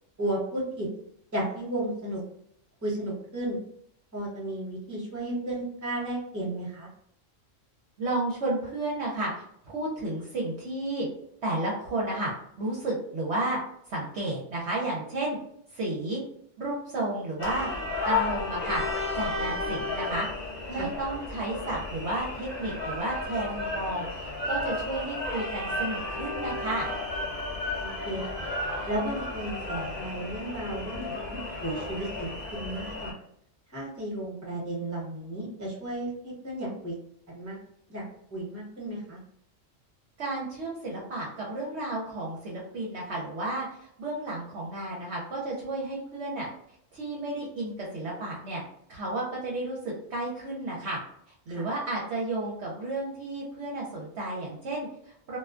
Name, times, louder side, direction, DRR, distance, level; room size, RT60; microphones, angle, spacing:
voice 1, 0.2-0.9 1.3-2.2 2.8-3.6 4.1-6.9 20.7-20.9 27.8-28.5 28.8-33.2 33.7-36.9 37.3-37.6 37.9-39.2 51.5-51.7, right 1 dB, 15° right, -5 dB, 0.9 m, -34 dB
voice 2, 8.0-11.1 11.4-13.6 13.9-15.4 15.7-16.2 16.6-17.7 18.0-18.8 19.2-20.3 20.7-26.9 40.2-46.5 46.9-48.6 48.9-51.0 51.5-55.4, right 2 dB, 65° right, -4 dB, 0.8 m, -32 dB
sound 1, 17.4-33.1, left 2 dB, 45° left, 0.6 m, -33 dB
2.3 x 2.2 x 2.4 m, 0.69 s
omnidirectional pair, 1.4 m